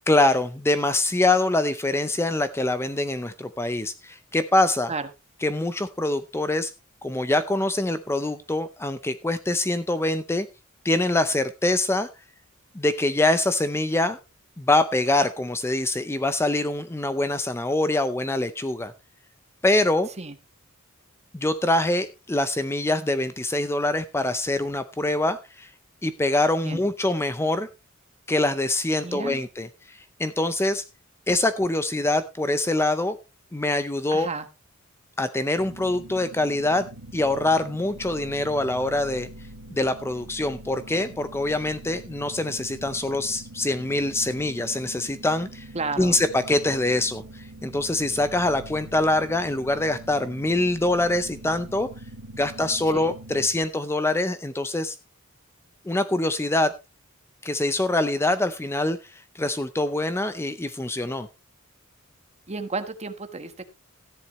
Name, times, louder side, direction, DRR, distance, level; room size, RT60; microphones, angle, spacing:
voice 1, 0.1-4.9 5.4-6.7 7.0-10.5 10.8-12.1 12.7-14.2 14.6-18.9 19.6-20.1 21.3-25.7 26.0-27.7 28.3-30.8 31.3-33.2 33.5-34.3 35.2-36.9 37.1-39.3 39.7-45.7 46.0-51.9 52.4-55.0 55.9-56.7 57.4-61.3, left 2 dB, 10° left, 12 dB, 0.5 m, -24 dB
voice 2, 29.0-29.4 34.1-34.5 45.7-46.2 52.9-53.1 62.5-63.6, right 3 dB, 30° right, 9 dB, 1.3 m, -32 dB
sound 1, 35.6-53.5, right 1 dB, 80° right, 1.4 m, -43 dB
14.0 x 10.5 x 3.1 m, 0.27 s
head